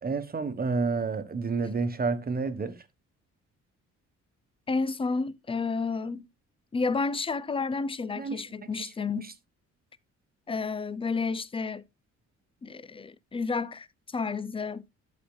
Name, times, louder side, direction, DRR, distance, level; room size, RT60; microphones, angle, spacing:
voice 1, 0.0-2.8 8.2-8.4 8.8-8.9 9.2-9.3, right 4 dB, 30° right, 1.3 m, -29 dB
voice 2, 4.7-6.3 6.7-9.3 10.5-11.8 12.6-14.8, left 4 dB, 20° left, 0.6 m, -31 dB
12.0 x 7.8 x 2.3 m
cardioid pair, 90°, 30 cm